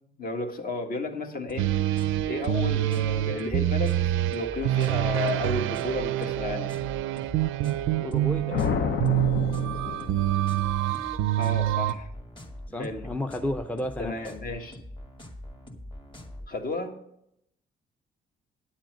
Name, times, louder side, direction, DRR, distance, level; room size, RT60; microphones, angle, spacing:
voice 1, 0.2-1.9 2.3-4.0 4.3-6.9 11.4-12.1 12.8-13.1 14.0-14.8 16.5-16.9, left 3 dB, 45° left, 4 dB, 1.6 m, -33 dB
sound 1, 1.5-16.5, left 1 dB, 25° left, 1.8 m, -43 dB
sound 2, 1.6-11.9, right 14 dB, 85° right, 0.5 m, -26 dB
voice 2, 8.0-8.8 12.7-14.3, left 1 dB, 5° left, 7 dB, 0.6 m, -33 dB
sound 3, 8.5-10.8, left 7 dB, 65° left, 0.8 m, -30 dB
10.0 x 7.5 x 6.3 m, 0.79 s
cardioid pair, 90°, 20 cm